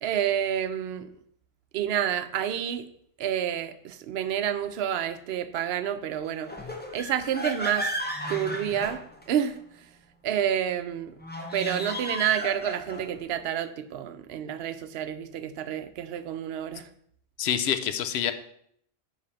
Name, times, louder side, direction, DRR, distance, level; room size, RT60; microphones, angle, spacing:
voice 1, 0.0-1.1 1.7-2.9 3.2-6.5 6.9-7.9 8.3-9.0 9.3-9.6 10.2-11.1 11.5-16.9, right 9 dB, 60° right, 11 dB, 0.8 m, -29 dB
sound 1, 6.4-9.6 11.2-13.2, equal, 10° left, 0.7 m, -34 dB
voice 2, 17.4-18.3, left 9 dB, 65° left, 10 dB, 0.9 m, -26 dB
9.8 x 3.4 x 5.7 m, 0.69 s
omnidirectional pair, 1.3 m